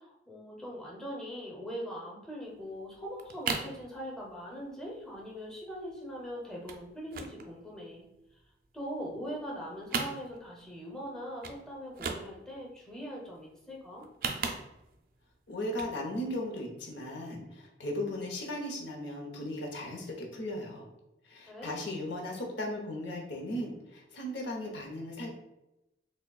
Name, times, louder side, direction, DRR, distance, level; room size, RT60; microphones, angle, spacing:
voice 1, 0.0-8.0 8.7-14.1 21.5-21.8, equal, 5° left, -3 dB, 0.7 m, -41 dB
sound 1, 2.6-2.7 2.9-3.8 4.2-4.5 4.8-4.9 5.1-5.4 5.7-6.2 6.6-6.9 7.1-8.4 8.8-9.5 9.8-10.7 11.0-11.1 11.4-11.6 11.9-12.6 13.9-15.0 15.6-16.0 16.4-16.5, right 5 dB, 50° right, 0.4 m, -36 dB
voice 2, 15.5-20.9 21.2-25.3, left 1 dB, 85° left, 1 dB, 0.9 m, -37 dB
6.2 x 2.2 x 2.3 m, 0.91 s
head